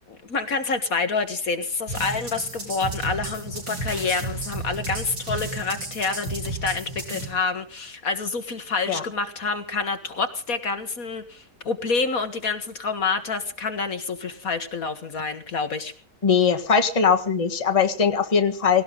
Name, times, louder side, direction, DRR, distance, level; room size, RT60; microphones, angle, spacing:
voice 1, 0.1-15.9, left 4 dB, 55° left, 9 dB, 1.8 m, -28 dB
sound 1, 1.9-7.3, right 2 dB, 85° right, 6.7 m, -33 dB
voice 2, 16.2-18.8, left 6 dB, 20° left, 5 dB, 1.6 m, -20 dB
18.5 x 18.0 x 3.9 m, 0.42 s
omnidirectional pair, 1.8 m